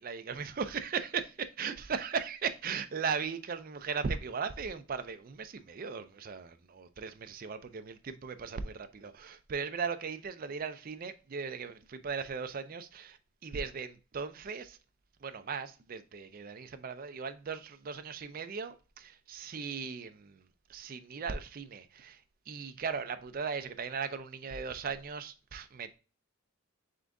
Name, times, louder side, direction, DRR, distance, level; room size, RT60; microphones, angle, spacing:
voice 1, 0.0-14.8 15.2-26.0, right 5 dB, 40° right, 0.4 m, -38 dB
3.8 x 3.6 x 3.3 m
head